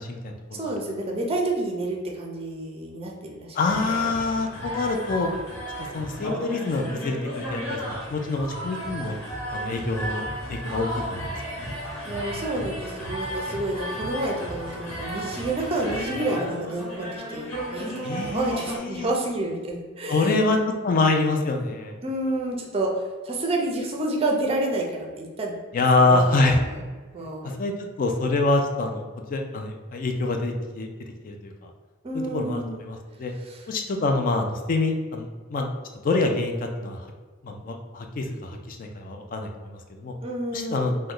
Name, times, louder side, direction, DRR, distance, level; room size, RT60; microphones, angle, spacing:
voice 1, 0.0-0.7 3.5-5.3 5.9-9.2 9.5-11.3 11.6-11.7 18.0-19.1 20.1-22.0 25.7-26.6 27.4-30.9 31.2-31.7 32.1-33.3 33.7-35.7 36.0-37.1 37.4-40.1 40.5-41.0, left 3 dB, 40° left, 3 dB, 0.3 m, -26 dB
voice 2, 0.5-3.6 3.8-4.1 12.1-17.9 18.2-20.4 22.0-22.9 23.2-25.6 26.1-26.7 27.1-27.6 32.0-32.8 33.5-33.6 40.2-40.9, right 2 dB, 25° right, 0 dB, 0.5 m, -29 dB
sound 1, 3.6-18.8, equal, 75° left, 0.9 m, -34 dB
3.0 x 2.1 x 3.7 m, 1.4 s
head